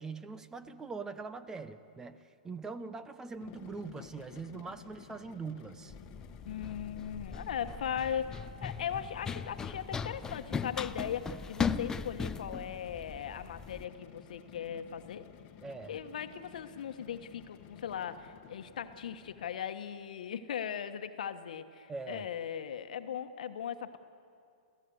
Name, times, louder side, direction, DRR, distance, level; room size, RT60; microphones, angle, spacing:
voice 1, 0.0-5.9 15.6-15.9 21.9-22.2, right 4 dB, 10° right, 13 dB, 0.8 m, -42 dB
sound 1, 3.3-19.7, left 11 dB, 35° left, 1.3 m, -54 dB
Run, 5.9-13.8, left 6 dB, 15° left, 0.6 m, -38 dB
voice 2, 6.5-15.3 15.9-24.0, left 8 dB, 70° left, 9 dB, 1.3 m, -38 dB
27.5 x 16.0 x 7.9 m, 2.5 s
hypercardioid pair, 125°, 4 cm